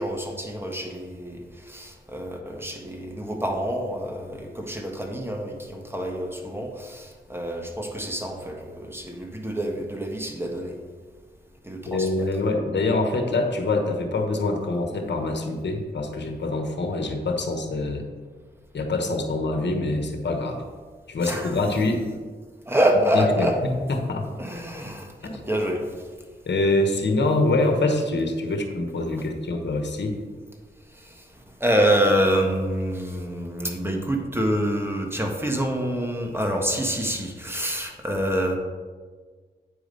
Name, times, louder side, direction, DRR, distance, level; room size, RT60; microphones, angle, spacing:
voice 1, 0.0-10.7 11.6-12.3 21.2-21.6 22.7-23.6 24.4-25.9 31.0-31.2 31.6-38.6, equal, 10° right, 2 dB, 1.5 m, -26 dB
voice 2, 11.9-18.1 18.7-20.6 21.1-22.0 23.1-24.2 26.5-30.2, left 2 dB, 75° left, 4 dB, 1.2 m, -25 dB
8.8 x 4.9 x 5.3 m, 1.5 s
cardioid pair, 55°, 18 cm